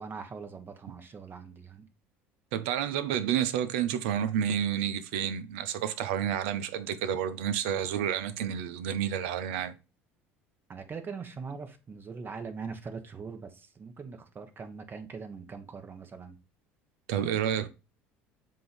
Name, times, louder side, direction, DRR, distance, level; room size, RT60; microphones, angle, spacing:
voice 1, 0.0-1.9 10.7-16.4 17.6-17.7, right 5 dB, 35° right, 1.3 m, -42 dB
voice 2, 2.5-9.8 17.1-17.7, right 9 dB, 70° right, 0.6 m, -30 dB
7.5 x 2.8 x 5.3 m
hypercardioid pair, 70°, 7 cm